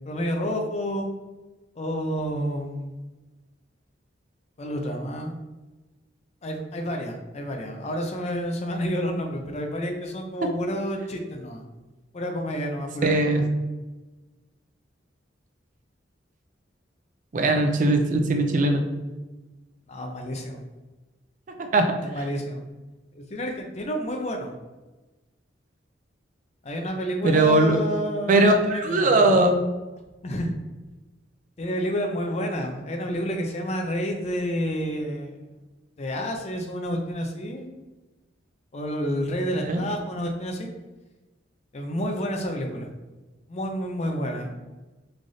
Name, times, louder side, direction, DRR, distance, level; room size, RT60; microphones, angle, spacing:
voice 1, 0.1-1.1 1.8-2.9 4.6-5.3 6.4-11.6 12.1-13.1 13.4-13.5 19.9-20.6 22.0-22.6 23.1-24.5 26.6-29.5 30.2-30.6 31.6-35.3 36.0-37.7 38.7-40.7 41.7-42.9 43.5-44.5, equal, 35° left, 3 dB, 0.4 m, -29 dB
voice 2, 13.0-13.4 17.3-18.8 21.6-21.9 27.2-27.8 28.3-29.5 39.7-39.8, right 2 dB, 45° right, 5 dB, 0.4 m, -20 dB
3.2 x 2.4 x 3.9 m, 1.1 s
head